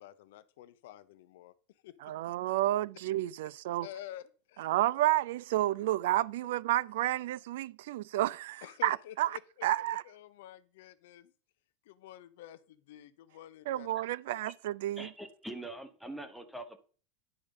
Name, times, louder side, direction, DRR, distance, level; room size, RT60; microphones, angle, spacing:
voice 1, 0.0-1.5 1.8-2.1 3.8-4.7 8.6-11.3 11.8-13.9, left 12 dB, 75° left, 0.8 m, -49 dB
voice 2, 2.0-3.9 4.6-10.0 13.7-15.1, right 15 dB, 75° right, 0.4 m, -31 dB
voice 3, 15.0-16.8, right 1 dB, ahead, 1.0 m, -43 dB
10.0 x 5.2 x 5.3 m
supercardioid pair, 165°, 0 cm